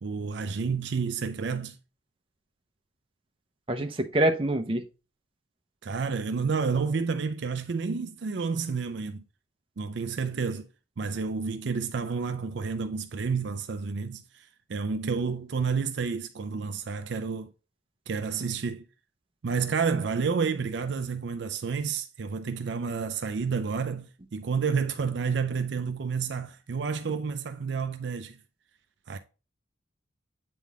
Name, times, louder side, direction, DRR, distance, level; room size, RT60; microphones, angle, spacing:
voice 1, 0.0-1.8 5.8-9.2 9.8-10.7 11.0-17.5 18.1-18.9 19.4-28.4 29.1-29.2, right 5 dB, 65° right, 0.5 m, -30 dB
voice 2, 3.7-4.8, right 1 dB, 25° right, 0.7 m, -25 dB
8.4 x 3.7 x 3.5 m
head